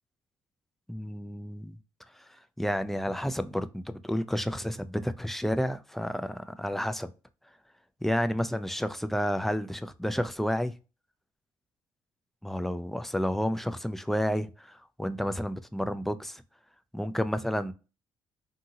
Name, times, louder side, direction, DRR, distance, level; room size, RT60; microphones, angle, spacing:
voice 1, 0.9-1.8 2.6-7.1 8.0-10.7 12.4-16.4 16.9-17.7, equal, 5° left, 0.3 m, -30 dB
2.7 x 2.6 x 2.6 m
supercardioid pair, 65°, 9 cm